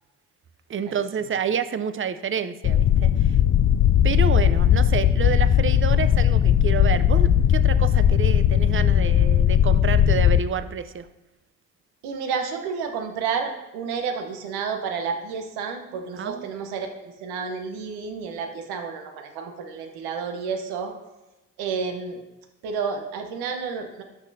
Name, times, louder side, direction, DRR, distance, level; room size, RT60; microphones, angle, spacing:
voice 1, 0.7-3.4 4.0-11.1 16.2-16.5, right 7 dB, 35° right, 13 dB, 0.6 m, -29 dB
sound 1, 2.6-10.4, left 10 dB, 35° left, 0.4 m, -18 dB
voice 2, 12.0-20.9 21.6-22.2 22.6-24.0, right 5 dB, 75° right, 5 dB, 1.1 m, -30 dB
12.0 x 6.4 x 2.7 m, 1.1 s
hypercardioid pair, 50°, 38 cm